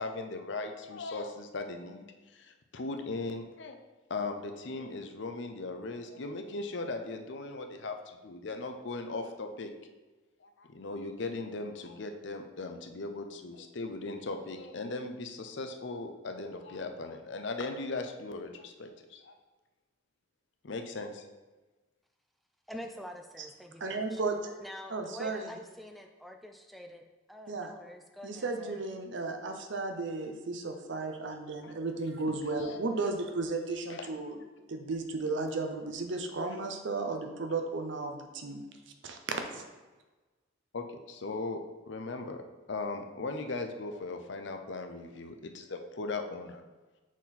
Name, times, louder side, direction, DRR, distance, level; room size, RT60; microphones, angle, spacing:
voice 1, 0.0-3.8 4.1-9.7 10.4-19.4 20.6-21.2 31.6-31.7 32.5-32.8 33.9-34.1 40.7-41.6 41.8-42.4 42.7-46.6, left 3 dB, 60° left, 6 dB, 0.6 m, -38 dB
voice 2, 22.7-24.2 24.6-28.8, equal, ahead, 3 dB, 0.3 m, -46 dB
voice 3, 23.8-24.5 24.9-25.6 27.5-27.7 28.2-34.4 34.7-38.6 39.0-39.6, right 3 dB, 65° right, 5 dB, 0.7 m, -34 dB
6.1 x 4.3 x 4.1 m, 1.2 s
head